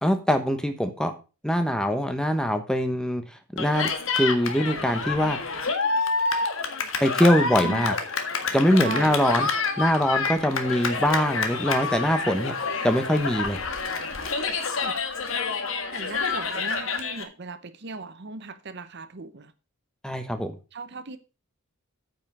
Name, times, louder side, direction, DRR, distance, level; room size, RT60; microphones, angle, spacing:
voice 1, 0.0-1.1 1.4-3.2 3.5-5.4 7.0-7.9 8.5-9.5 9.8-12.5 12.8-13.6 20.0-20.6, equal, 5° left, 1.0 m, -23 dB
Cheering, 3.6-17.2, left 4 dB, 65° left, 1.6 m, -28 dB
voice 2, 8.8-9.2 14.8-15.0 15.9-19.5 20.7-21.2, right 3 dB, 50° right, 0.8 m, -37 dB
9.1 x 5.7 x 6.2 m
head